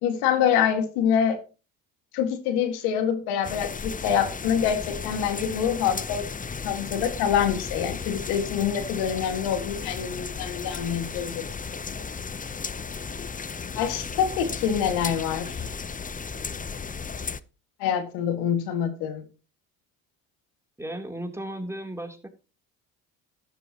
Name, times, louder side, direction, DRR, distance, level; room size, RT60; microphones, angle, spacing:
voice 1, 0.0-1.4 2.1-6.2 6.6-11.4 13.8-15.6 17.8-19.2, left 8 dB, 90° left, 8 dB, 2.0 m, -25 dB
sound 1, 3.4-17.4, left 5 dB, 20° left, 0.8 m, -35 dB
voice 2, 20.8-22.3, right 1 dB, 5° right, 4 dB, 3.3 m, -35 dB
12.5 x 11.5 x 3.0 m, 0.32 s
supercardioid pair, 75°, 36 cm